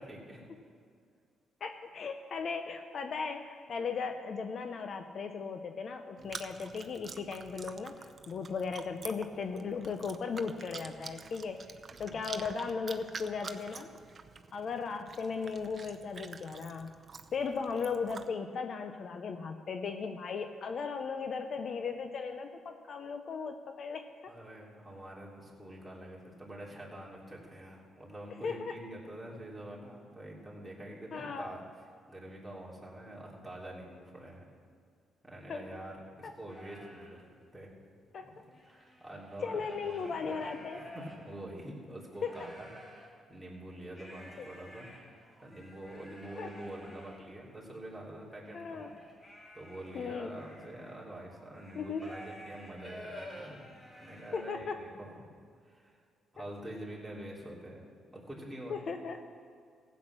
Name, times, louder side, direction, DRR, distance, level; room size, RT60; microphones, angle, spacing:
voice 1, 0.1-0.4 11.9-12.2 24.3-31.6 32.1-34.4 35.2-37.2 37.5-37.7 38.2-38.3 38.7-44.9 45.4-48.8 49.5-53.6 54.0-55.3 55.6-56.0 56.3-57.8 58.1-58.9, right 1 dB, 5° right, -5 dB, 3.2 m, -46 dB
voice 2, 1.6-11.7 12.0-13.9 14.5-16.9 17.3-24.3 28.4-28.8 31.1-31.5 35.5-35.7 36.2-36.3 38.1-38.3 39.4-40.8 42.2-42.4 44.4-44.5 46.4-46.5 48.5-48.9 49.9-50.4 51.7-52.0 54.3-54.8 58.7-59.2, left 5 dB, 55° left, 7 dB, 0.7 m, -37 dB
Chewing mastication, 6.2-18.3, right 5 dB, 40° right, 0.7 m, -48 dB
sound 1, 36.5-37.2 37.7-37.8 38.0-41.6 42.1-43.1 43.9-54.7, equal, 30° left, 2.7 m, -51 dB
15.5 x 8.2 x 6.0 m, 2.2 s
cardioid pair, 90°, 0 cm